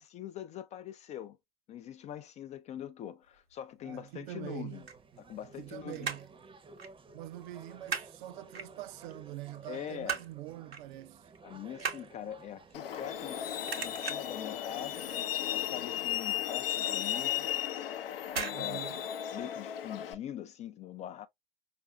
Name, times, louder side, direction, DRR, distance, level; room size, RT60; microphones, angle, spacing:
voice 1, 0.0-1.4 1.7-4.9 5.2-6.1 9.7-10.2 11.4-15.0 15.4-17.5 18.3-18.9 19.3-21.3, left 10 dB, 25° left, 0.3 m, -43 dB
voice 2, 3.8-4.8 5.1-6.3 7.1-11.3 18.5-19.0, right 15 dB, 55° right, 0.5 m, -44 dB
sound 1, 4.6-5.6 5.9-6.4 6.8-7.0 7.3-8.1 8.5-9.1 9.5-10.4 10.7-10.9 11.2-13.4 13.7-14.4 14.8-15.2 15.4-15.5 15.9-16.0 16.4-16.5 17.4-17.7 18.3-18.6 18.9-19.0, right 5 dB, 90° right, 1.0 m, -38 dB
sound 2, 4.7-15.3, right 4 dB, 15° right, 0.7 m, -54 dB
Truck, 12.7-20.1, left 11 dB, 70° left, 0.6 m, -35 dB
5.3 x 2.5 x 2.2 m
figure-of-eight pair, 85°, 30 cm